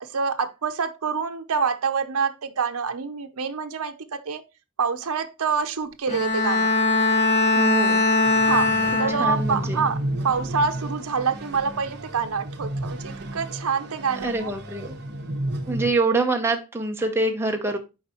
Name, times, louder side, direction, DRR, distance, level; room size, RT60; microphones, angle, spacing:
voice 1, 0.0-4.4 4.8-6.7 8.5-8.7 9.0-10.0 10.2-14.5, right 5 dB, 80° right, 0.7 m, -26 dB
Bowed string instrument, 6.1-9.6 10.1-10.5, left 2 dB, 30° left, 2.3 m, -21 dB
voice 2, 7.6-8.1 9.2-9.9 14.2-14.9 15.7-17.8, right 2 dB, 10° right, 0.8 m, -25 dB
sound 1, 8.2-15.9, right 1 dB, 50° right, 1.2 m, -32 dB
7.2 x 4.7 x 3.0 m
head